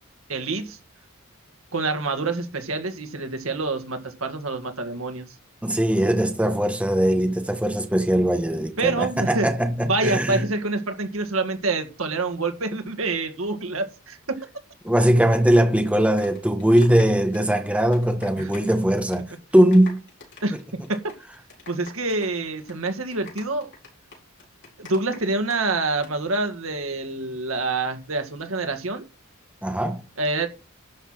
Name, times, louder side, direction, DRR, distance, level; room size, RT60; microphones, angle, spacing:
voice 1, 0.3-0.8 1.7-5.3 8.8-9.5 9.8-14.4 18.4-18.5 20.4-20.6 20.9-21.1 21.7-23.7 24.8-29.0 30.2-30.5, right 3 dB, 75° right, 1.9 m, -26 dB
voice 2, 5.6-10.4 14.8-20.0 29.6-30.0, right 1 dB, 5° right, 1.3 m, -20 dB
sound 1, 15.9-18.8 19.0-19.3 19.6-25.6 25.9-26.1, left 3 dB, 60° left, 4.8 m, -45 dB
11.5 x 5.8 x 6.1 m
head